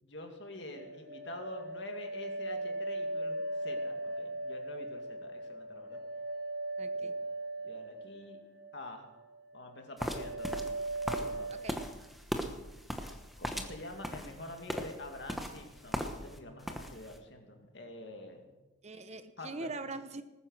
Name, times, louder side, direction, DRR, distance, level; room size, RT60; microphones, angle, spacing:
voice 1, 0.0-6.0 6.9-7.1 7.6-8.4 8.7-9.0 9.5-10.7 11.0-11.7 13.4-18.5 19.4-19.7, left 1 dB, 60° left, 4 dB, 2.3 m, -47 dB
sound 1, 0.8-8.9 9.2-9.8 10.1-11.8, right 2 dB, 50° right, 1.2 m, -39 dB
voice 2, 6.8-7.1 11.5-11.8 18.8-20.2, right 3 dB, 35° right, 10 dB, 0.8 m, -42 dB
sound 2, 10.0-16.4 16.6-17.1, equal, ahead, 1.0 m, -38 dB
20.0 x 9.7 x 6.4 m, 1.1 s
head